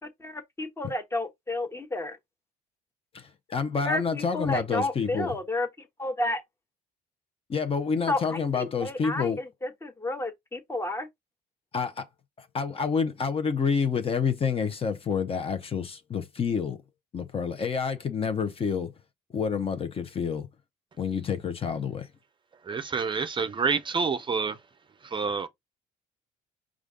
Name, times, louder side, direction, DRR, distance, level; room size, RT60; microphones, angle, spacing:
voice 1, 0.0-2.2 3.8-6.4 8.1-11.1, left 1 dB, 15° left, 1.0 m, -31 dB
voice 2, 3.1-5.3 7.5-9.4 11.7-12.1 12.4-16.8 17.1-18.9 19.3-20.5 21.0-22.1, left 6 dB, 35° left, 0.7 m, -28 dB
voice 3, 22.7-24.6 25.1-25.5, right 5 dB, 30° right, 0.5 m, -28 dB
5.0 x 2.4 x 3.7 m
cardioid pair, 110°, 17 cm